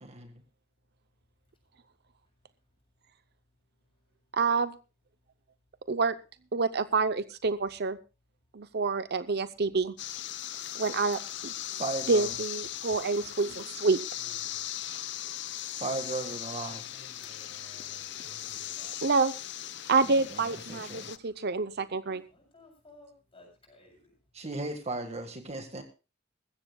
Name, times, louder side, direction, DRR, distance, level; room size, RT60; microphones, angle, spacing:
voice 1, 0.0-0.3 11.8-12.3 15.8-16.8 20.0-21.1 24.3-25.8, right 2 dB, 35° right, 6 dB, 1.6 m, -36 dB
voice 2, 4.3-4.7 5.9-6.1 6.5-8.0 8.5-9.9 10.7-11.5 12.1-14.0 19.0-19.3 19.9-22.2, right 4 dB, 55° right, 13 dB, 0.7 m, -27 dB
sound 1, 10.0-21.2, left 12 dB, 60° left, 0.7 m, -38 dB
voice 3, 14.2-14.6 16.1-16.2 16.5-19.0 21.1-21.3 21.8-21.9 22.3-24.1, left 2 dB, 30° left, 2 dB, 7.5 m, -56 dB
21.0 x 15.5 x 2.3 m, 0.30 s
head